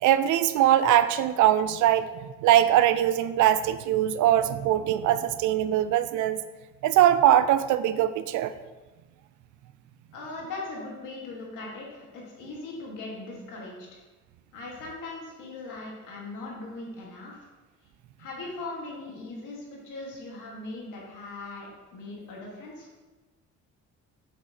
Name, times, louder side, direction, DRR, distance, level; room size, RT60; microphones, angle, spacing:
voice 1, 0.0-6.4 6.8-8.5, right 11 dB, 80° right, 13 dB, 0.4 m, -22 dB
voice 2, 10.1-13.9 14.5-17.5 18.2-22.9, left 2 dB, 85° left, -3 dB, 1.7 m, -39 dB
6.1 x 5.7 x 2.9 m, 1.2 s
cardioid pair, 90°, 30 cm